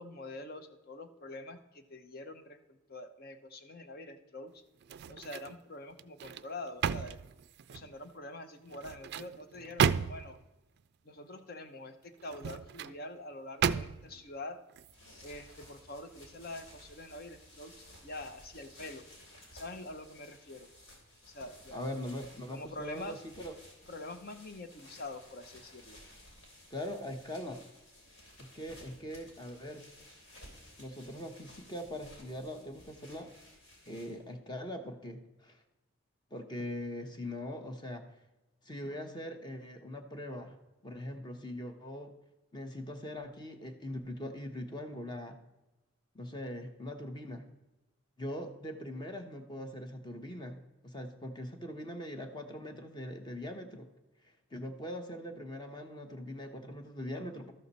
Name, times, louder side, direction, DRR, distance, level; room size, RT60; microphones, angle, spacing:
voice 1, 0.0-4.6 5.1-7.2 7.7-10.4 11.0-14.6 15.2-19.1 19.5-20.7 21.3-21.8 22.5-23.2 23.9-26.0, left 2 dB, 50° left, 8 dB, 0.8 m, -45 dB
sound 1, 4.8-5.6 6.0-7.9 8.7-10.4 12.2-13.0 13.6-14.2 14.7-14.9, right 7 dB, 55° right, 0.3 m, -33 dB
sound 2, 14.7-34.3, left 1 dB, 80° left, 3.4 m, -56 dB
voice 2, 21.7-23.5 26.7-27.6 28.4-29.8 30.8-33.3 33.9-35.6 36.3-38.0 38.6-40.6 40.8-42.1 42.5-45.4 46.1-47.5 48.2-50.6 50.8-53.9 54.5-57.5, left 1 dB, 25° left, 5 dB, 0.9 m, -41 dB
13.0 x 6.5 x 4.1 m, 1.0 s
head